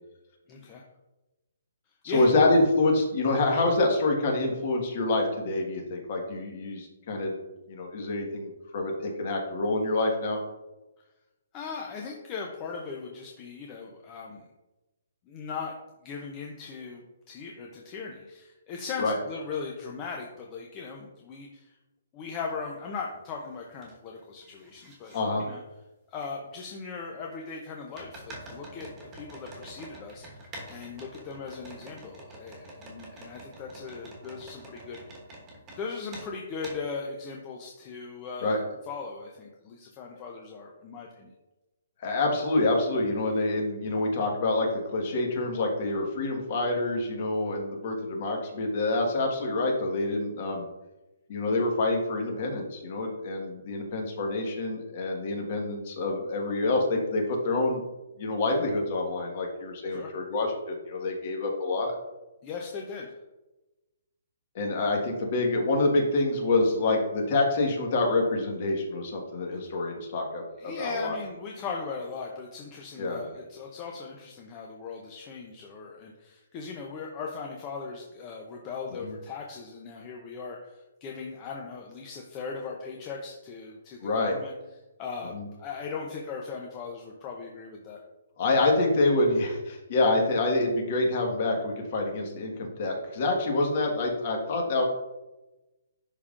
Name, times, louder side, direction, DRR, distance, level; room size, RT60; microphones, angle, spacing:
voice 1, 0.5-0.8 2.1-2.6 11.5-14.4 15.3-15.7 16.0-21.8 22.1-25.6 26.1-35.0 35.8-41.3 59.9-60.1 62.4-63.2 70.6-84.5 85.0-85.3 85.6-88.0, left 5 dB, 20° left, 0 dB, 0.5 m, -39 dB
voice 2, 2.0-7.3 7.7-10.4 19.0-19.2 25.1-25.4 38.4-38.6 42.0-50.6 51.3-57.8 58.2-61.9 64.5-70.4 70.8-71.2 73.0-73.2 79.0-79.1 84.0-84.3 85.3-85.5 88.4-94.8, left 2 dB, 40° left, 1 dB, 1.4 m, -27 dB
sound 1, 22.5-22.6 23.1-23.9 24.2-25.2 26.2-26.3 27.9-35.8 36.1-36.3 36.6-36.8, right 1 dB, 15° right, 1.3 m, -46 dB
10.5 x 3.6 x 2.5 m, 1.0 s
hypercardioid pair, 170°, 0 cm